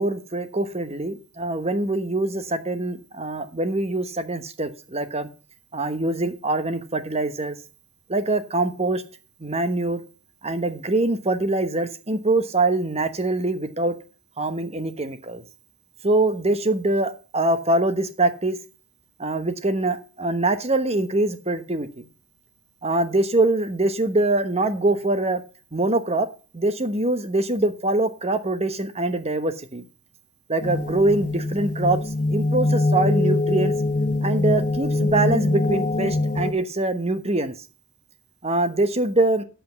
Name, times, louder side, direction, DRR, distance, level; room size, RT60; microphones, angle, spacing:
voice 1, 0.0-5.3 5.7-7.6 8.1-9.0 9.4-10.0 10.4-13.9 14.4-15.4 16.0-18.6 19.2-22.0 22.8-25.4 25.7-26.3 26.5-29.8 30.5-32.0 32.3-33.7 34.2-37.5 38.4-39.4, right 2 dB, 30° right, 10 dB, 1.1 m, -23 dB
sound 1, 30.6-36.5, left 2 dB, 35° left, 1.3 m, -23 dB
8.5 x 7.8 x 7.1 m, 0.37 s
head